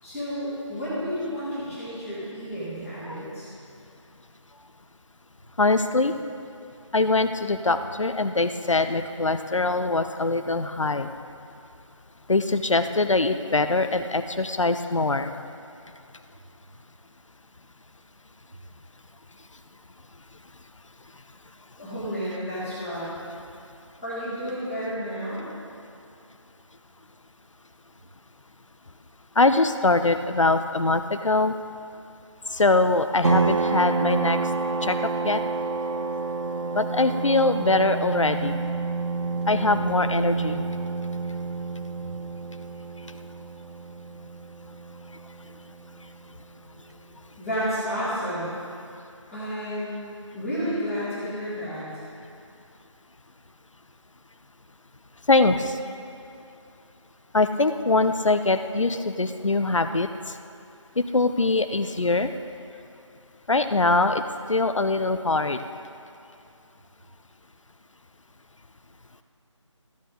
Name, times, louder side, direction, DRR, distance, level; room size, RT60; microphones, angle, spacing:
voice 1, 0.0-3.5 21.8-23.1 24.0-25.4 47.4-48.5 49.3-50.1 50.3-52.0, equal, ahead, -22 dB, 2.0 m, -31 dB
voice 2, 5.6-6.1 6.9-11.1 12.3-15.3 29.4-31.5 32.5-34.4 34.8-35.0 35.2-35.4 36.7-38.5 39.5-40.6 55.3-55.8 57.3-60.1 61.0-62.3 63.5-64.2 64.5-65.6, left 3 dB, 75° left, 9 dB, 0.7 m, -22 dB
sound 1, 33.2-46.5, right 4 dB, 60° right, 0.7 m, -29 dB
14.0 x 9.4 x 3.9 m, 2.6 s
figure-of-eight pair, 160°, 16 cm